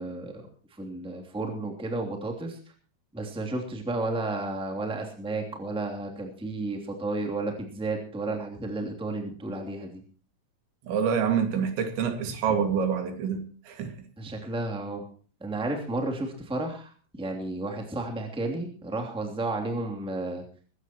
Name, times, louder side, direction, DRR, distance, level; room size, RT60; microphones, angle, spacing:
voice 1, 0.0-2.6 3.1-10.0 12.5-12.6 14.2-15.1 15.4-20.4, right 2 dB, ahead, 1.9 m, -32 dB
voice 2, 10.9-14.1, right 7 dB, 85° right, 4.5 m, -27 dB
21.0 x 16.0 x 3.0 m
omnidirectional pair, 5.1 m